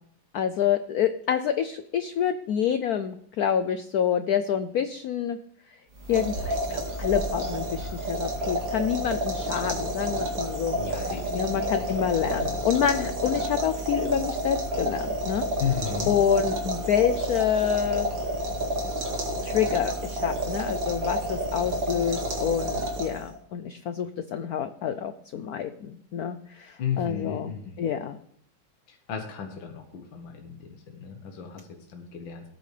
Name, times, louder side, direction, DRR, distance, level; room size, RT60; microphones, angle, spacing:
voice 1, 0.3-5.4 6.1-10.8 11.3-15.5 16.1-18.1 19.4-28.2, left 8 dB, 85° left, 10 dB, 0.8 m, -27 dB
sound 1, 6.0-23.4, right 1 dB, 65° right, 2.7 m, -30 dB
voice 2, 10.8-12.6 15.6-16.1 26.8-27.9 28.9-31.7 31.9-32.4, left 8 dB, 70° left, 3 dB, 1.9 m, -34 dB
17.5 x 9.2 x 3.3 m, 0.67 s
omnidirectional pair, 2.3 m